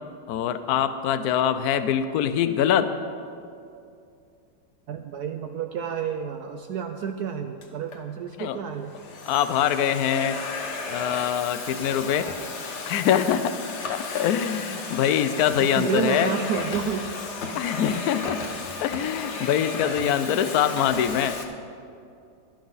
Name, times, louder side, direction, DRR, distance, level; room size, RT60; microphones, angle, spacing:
voice 1, 0.3-3.0 8.4-8.6 9.3-10.4 10.9-12.3 12.9-13.6 13.9-16.3 17.5-18.4 18.8-21.4, left 9 dB, 75° left, 11 dB, 0.8 m, -24 dB
voice 2, 4.9-9.0 12.2-12.3 15.3-17.0 20.2-20.3, right 7 dB, 75° right, 7 dB, 0.9 m, -30 dB
Domestic sounds home sounds, 7.6-8.0 8.7-21.4, left 4 dB, 45° left, 1.0 m, -34 dB
16.0 x 12.0 x 4.0 m, 2.5 s
omnidirectional pair, 2.2 m